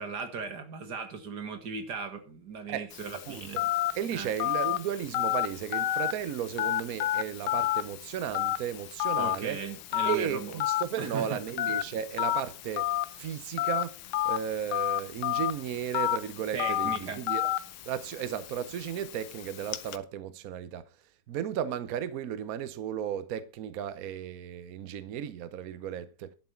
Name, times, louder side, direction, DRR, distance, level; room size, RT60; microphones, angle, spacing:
voice 1, 0.0-3.6 4.1-4.3 9.1-10.6 11.0-11.4 16.5-17.2, right 5 dB, 50° right, 2.3 m, -37 dB
Telephone, 2.9-20.0, left 13 dB, 75° left, 1.5 m, -32 dB
voice 2, 3.3-3.7 3.9-9.6 10.1-14.0 14.2-17.5 17.8-20.8 21.3-26.3, right 9 dB, 70° right, 0.8 m, -35 dB
12.0 x 7.4 x 5.6 m
omnidirectional pair, 2.4 m